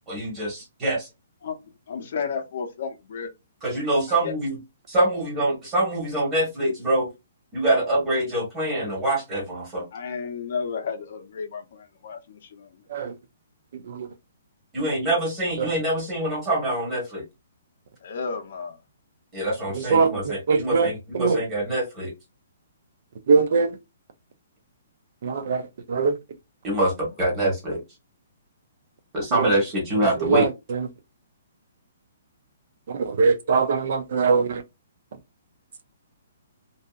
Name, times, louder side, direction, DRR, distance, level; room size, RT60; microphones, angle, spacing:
voice 1, 0.1-1.1 3.6-4.6 4.9-7.1 7.5-9.8 14.7-17.2 19.3-22.1 26.6-26.9 27.2-27.8 29.1-30.5, right 1 dB, 15° right, 1.1 m, -25 dB
voice 2, 1.9-3.3 4.2-4.3 9.9-13.2 18.0-18.8, left 5 dB, 50° left, 0.6 m, -33 dB
voice 3, 13.7-14.1 15.6-15.7 19.7-21.4 23.3-23.8 25.2-25.6 25.9-26.2 29.3-29.6 30.0-30.9 32.9-34.6, right 5 dB, 50° right, 0.4 m, -22 dB
2.7 x 2.4 x 2.3 m
hypercardioid pair, 170°, 0 cm